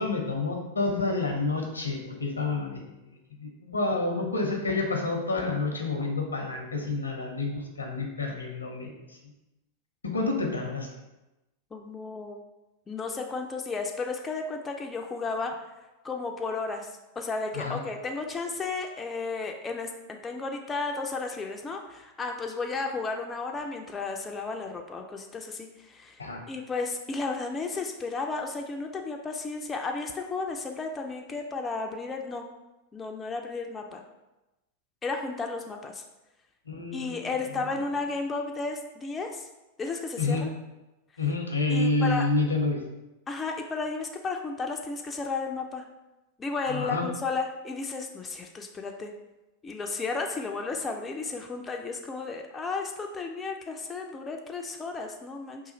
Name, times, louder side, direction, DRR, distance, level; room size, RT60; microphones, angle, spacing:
voice 1, 0.0-3.0 3.4-8.9 10.0-10.9 17.5-17.8 26.2-26.4 36.7-37.3 40.2-40.4 41.2-42.8 46.7-47.0, left 3 dB, 80° left, 2 dB, 0.6 m, -28 dB
voice 2, 11.7-12.4 12.9-15.5 16.0-16.9 17.2-32.5 32.9-34.0 35.0-36.0 36.9-39.5 39.8-40.5 41.7-42.3 43.3-45.8 46.4-49.1 49.6-55.6, left 4 dB, 20° left, 3 dB, 0.3 m, -33 dB
3.0 x 2.4 x 3.8 m, 0.99 s
figure-of-eight pair, 90°, 0 cm